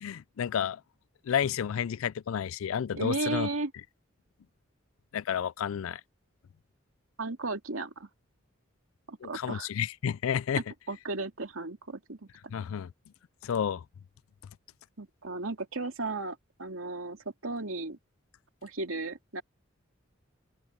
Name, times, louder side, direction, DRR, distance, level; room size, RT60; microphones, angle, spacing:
voice 1, 0.0-0.8 1.3-3.5 5.1-6.0 9.2-10.6 12.5-12.9 13.4-13.8, left 8 dB, 85° left, 0.4 m, -31 dB
voice 2, 2.9-3.7 7.2-8.1 9.1-9.7 10.6-12.3 15.0-18.0 18.6-19.4, right 3 dB, 90° right, 2.6 m, -35 dB
open air
head